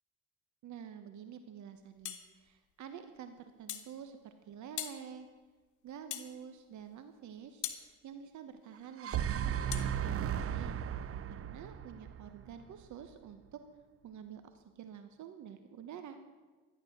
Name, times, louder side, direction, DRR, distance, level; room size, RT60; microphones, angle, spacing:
voice 1, 0.6-5.3 5.8-9.6 10.0-10.8 11.3-13.6 14.0-16.2, right 8 dB, 70° right, 9 dB, 1.1 m, -48 dB
sound 1, 2.0-2.3 3.7-3.9 4.8-5.0 6.1-6.3 7.6-7.8 9.7-9.9, left 11 dB, 75° left, 1.4 m, -40 dB
sound 2, 8.8-12.9, right 9 dB, 50° right, 0.7 m, -36 dB
13.5 x 10.5 x 7.8 m, 1.3 s
cardioid pair, 90°, 30 cm